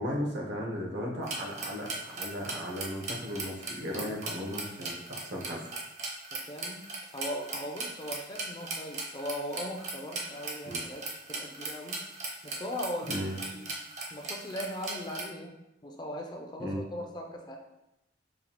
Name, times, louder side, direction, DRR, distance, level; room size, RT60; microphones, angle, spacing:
voice 1, 0.0-5.6 10.6-10.8 13.1-13.4 16.6-16.8, equal, 80° right, -2 dB, 1.0 m, -36 dB
sound 1, 1.2-15.2, right 3 dB, 40° right, 0.6 m, -38 dB
voice 2, 6.3-6.8 7.1-12.0 12.4-13.3 13.5-13.8 14.1-15.6 15.8-17.6, equal, 25° left, 1 dB, 0.4 m, -39 dB
5.1 x 2.3 x 2.9 m, 0.90 s
head